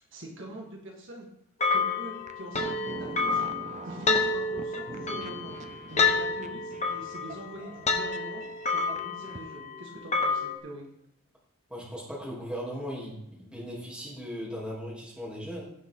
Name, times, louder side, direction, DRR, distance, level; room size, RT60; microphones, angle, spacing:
voice 1, 0.1-1.3 1.7-3.5 3.8-5.6 5.9-10.9, right 1 dB, 55° right, 0 dB, 1.9 m, -43 dB
sound 1, 1.6-10.6, left 4 dB, 30° left, 1.2 m, -29 dB
sound 2, 2.1-9.4, right 3 dB, 35° right, 0.6 m, -44 dB
voice 2, 11.7-15.6, equal, 5° right, -5 dB, 3.2 m, -38 dB
17.0 x 6.5 x 3.9 m, 0.78 s
head